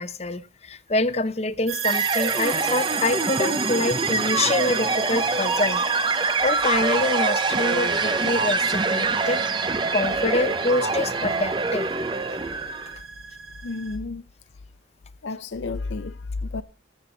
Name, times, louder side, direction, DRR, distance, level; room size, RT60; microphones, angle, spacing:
voice 1, 0.0-5.8 6.4-9.4 9.9-11.9, left 2 dB, 35° left, 0.8 m, -26 dB
sound 1, 1.7-13.9, right 6 dB, 80° right, 3.3 m, -33 dB
sound 2, 1.8-13.0, right 4 dB, 25° right, 0.6 m, -25 dB
voice 2, 13.6-14.3 15.2-16.6, left 3 dB, 65° left, 0.5 m, -31 dB
21.5 x 7.7 x 3.2 m
head